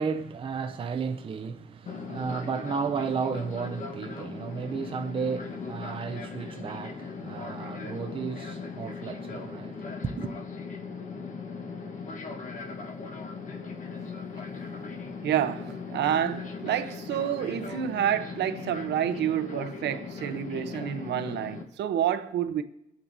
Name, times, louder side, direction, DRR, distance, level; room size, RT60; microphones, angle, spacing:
voice 1, 0.0-10.3, right 5 dB, 30° right, 0.6 m, -33 dB
Fixed-wing aircraft airplane, 1.9-21.6, left 4 dB, 45° left, 1.2 m, -39 dB
voice 2, 15.2-22.6, right 10 dB, 75° right, 0.8 m, -28 dB
25.5 x 8.8 x 2.7 m
cardioid pair, 150°, 18 cm